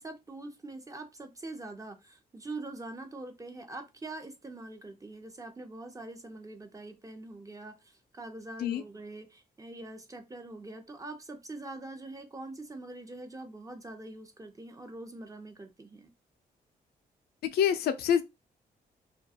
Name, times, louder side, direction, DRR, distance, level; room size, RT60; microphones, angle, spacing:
voice 1, 0.0-16.1, right 2 dB, 20° right, 0.6 m, -44 dB
voice 2, 17.4-18.2, left 9 dB, 75° left, 0.4 m, -26 dB
2.3 x 2.2 x 2.7 m
cardioid pair, 75°, 16 cm